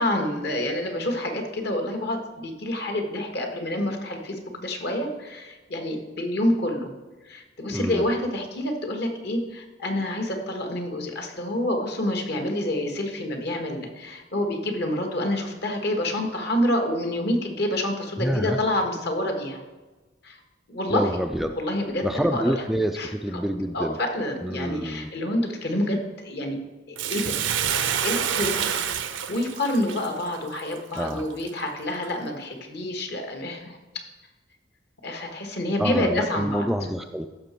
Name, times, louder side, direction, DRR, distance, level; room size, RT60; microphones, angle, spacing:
voice 1, 0.0-6.9 7.2-19.6 20.2-20.4 20.7-21.1 21.6-22.5 22.9-23.4 23.7-26.6 27.1-27.4 27.7-33.8 35.0-36.7, left 1 dB, 60° left, 3 dB, 1.6 m, -28 dB
voice 2, 7.7-8.0 18.2-18.6 20.9-21.5 22.0-24.0 24.4-25.1 30.9-31.3 35.8-37.3, equal, ahead, 6 dB, 0.3 m, -27 dB
Bathtub (filling or washing), 27.0-31.5 32.0-32.1, right 8 dB, 80° right, 0.7 m, -28 dB
14.5 x 6.0 x 4.4 m, 1.2 s
head